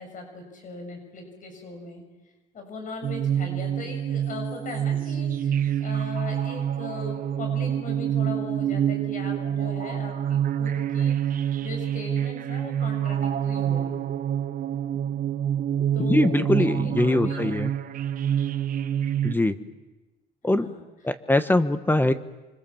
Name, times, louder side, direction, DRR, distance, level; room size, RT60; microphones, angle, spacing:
voice 1, 0.0-2.0 2.5-14.0 15.9-17.6 20.5-20.8, left 4 dB, 50° left, 4 dB, 7.1 m, -39 dB
sound 1, 3.0-19.3, right 9 dB, 55° right, 1.2 m, -27 dB
voice 2, 16.0-17.7 19.2-19.5 20.4-20.7 21.0-22.1, left 2 dB, 10° left, 11 dB, 1.2 m, -22 dB
28.5 x 25.0 x 7.2 m, 1.1 s
cardioid pair, 110°, 17 cm